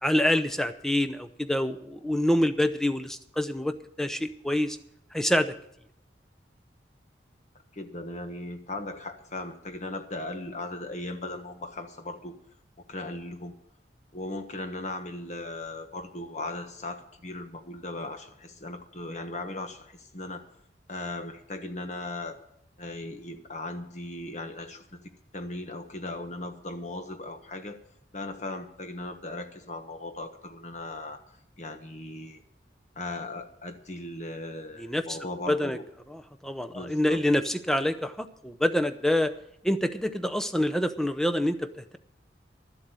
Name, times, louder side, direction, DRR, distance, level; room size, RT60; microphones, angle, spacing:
voice 1, 0.0-4.8 5.1-5.5 34.8-35.2 35.5-35.8 36.1-39.3 39.6-42.0, left 1 dB, 5° left, 8 dB, 0.7 m, -26 dB
voice 2, 7.7-12.3 12.9-13.6 14.1-20.4 20.9-22.4 22.8-27.8 28.1-32.4 32.9-35.8 36.7-37.2, left 2 dB, 40° left, 7 dB, 1.4 m, -38 dB
12.5 x 7.8 x 9.1 m, 0.76 s
head